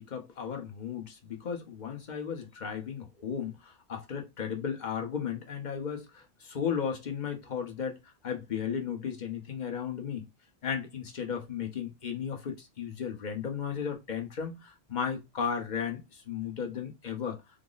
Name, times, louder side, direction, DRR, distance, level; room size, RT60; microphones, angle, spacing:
voice 1, 0.0-8.0 8.2-10.3 10.6-17.4, left 7 dB, 45° left, 0.8 m, -35 dB
3.8 x 2.0 x 3.8 m
omnidirectional pair, 1.2 m